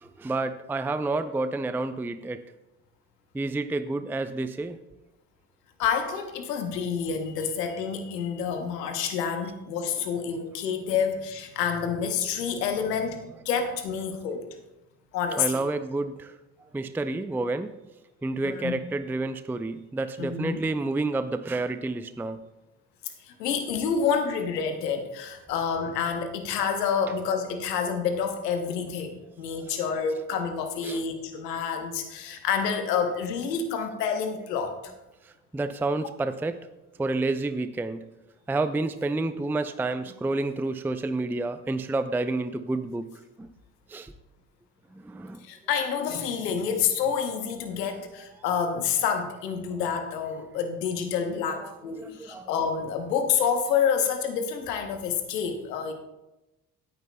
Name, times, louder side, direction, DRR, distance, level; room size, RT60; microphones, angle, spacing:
voice 1, 0.0-2.4 3.3-4.8 15.4-16.3 16.7-17.8 18.2-22.4 29.6-29.8 30.8-31.0 35.5-36.6 37.0-38.0 38.5-43.5 43.9-44.1 44.9-45.4 47.9-48.0 51.6-52.5, right 2 dB, 5° right, 11 dB, 0.5 m, -29 dB
voice 2, 5.8-14.4 15.1-15.6 18.4-18.8 20.2-20.6 23.2-34.8 45.4-55.9, left 6 dB, 90° left, 6 dB, 1.0 m, -28 dB
17.0 x 9.3 x 2.2 m, 0.98 s
hypercardioid pair, 45°, 47 cm